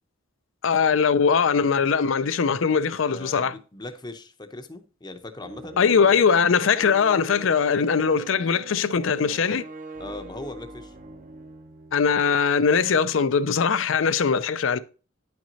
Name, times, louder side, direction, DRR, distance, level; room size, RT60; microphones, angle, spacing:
voice 1, 0.6-3.5 5.8-9.6 11.9-14.8, left 6 dB, 65° left, 0.5 m, -21 dB
voice 2, 3.0-5.8 10.0-11.0, left 2 dB, 20° left, 0.7 m, -39 dB
sound 1, 5.4-12.3, right 3 dB, 40° right, 0.7 m, -43 dB
9.9 x 6.0 x 2.7 m
head